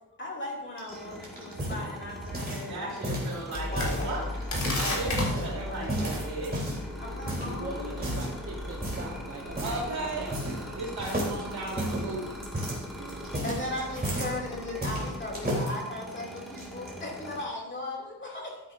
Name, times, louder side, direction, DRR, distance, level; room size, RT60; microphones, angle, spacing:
voice 1, 0.2-3.2 3.5-4.1 4.9-6.1 7.0-8.2 13.4-18.7, left 2 dB, 30° left, -3 dB, 2.9 m, -38 dB
sound 1, 0.8-2.7 3.0-4.0 4.4-5.5 5.9-6.9 7.3-7.5 8.0-8.3 8.8-9.1 9.6-9.8 10.1-10.7 11.0-14.4 14.8-15.7 16.4-16.9, equal, 25° right, 3.8 m, -32 dB
sound 2, 0.9-17.4, equal, ahead, 2.1 m, -44 dB
voice 2, 2.7-4.4 4.7-6.6 9.6-10.4 10.7-12.5, right 2 dB, 80° right, -4 dB, 3.5 m, -36 dB
sound 3, 3.5-15.6, left 2 dB, 50° left, 3.5 m, -38 dB
voice 3, 3.8-4.2 4.9-5.1 5.5-6.6 7.3-10.9 13.0-14.1, right 3 dB, 40° right, -1 dB, 1.4 m, -42 dB
13.5 x 9.5 x 2.7 m, 1.0 s
wide cardioid pair, 135°, 37 cm